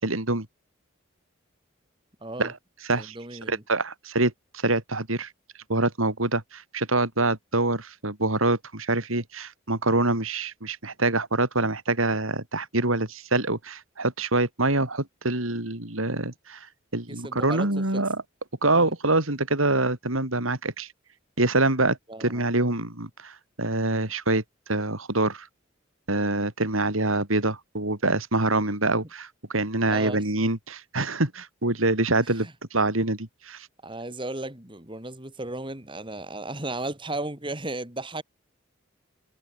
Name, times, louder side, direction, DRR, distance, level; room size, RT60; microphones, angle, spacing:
voice 1, 0.0-0.5 2.4-2.5 2.8-3.2 3.5-4.3 4.6-5.3 5.7-16.6 16.9-18.2 18.6-20.9 21.4-24.4 24.7-25.5 26.1-33.7, right 2 dB, 90° right, 4.3 m, -25 dB
voice 2, 2.2-2.5 2.9-3.6 17.1-17.7 17.9-18.0 18.7-18.9 22.1-22.4 29.9-30.2 32.3-32.5 33.8-38.2, right 2 dB, 25° right, 3.4 m, -35 dB
head